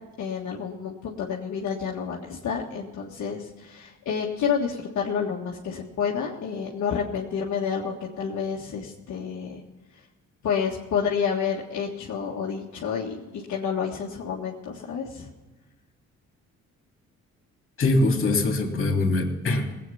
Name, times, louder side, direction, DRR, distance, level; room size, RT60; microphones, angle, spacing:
voice 1, 0.2-9.6 10.4-15.3, left 6 dB, 65° left, -3 dB, 1.8 m, -29 dB
voice 2, 17.8-19.7, left 2 dB, 45° left, 3 dB, 3.1 m, -23 dB
18.5 x 8.6 x 5.6 m, 1.2 s
cardioid pair, 90°, 30 cm